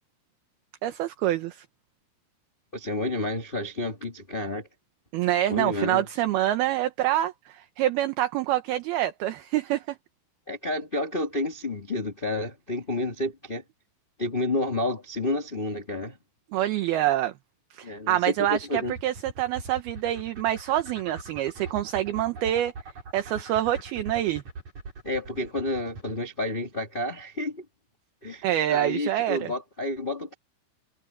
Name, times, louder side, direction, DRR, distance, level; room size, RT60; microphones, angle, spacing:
voice 1, 0.8-1.7 5.1-10.0 16.5-17.3 17.7-22.7 23.1-24.4 28.4-29.5, right 13 dB, 70° right, 2.6 m, -26 dB
voice 2, 2.7-4.7 5.5-6.1 10.5-13.6 14.2-16.2 17.8-18.9 25.0-27.6 28.2-30.3, left 1 dB, 55° left, 0.5 m, -30 dB
sound 1, 18.0-26.2, right 3 dB, 40° right, 5.9 m, -41 dB
omnidirectional pair, 5.3 m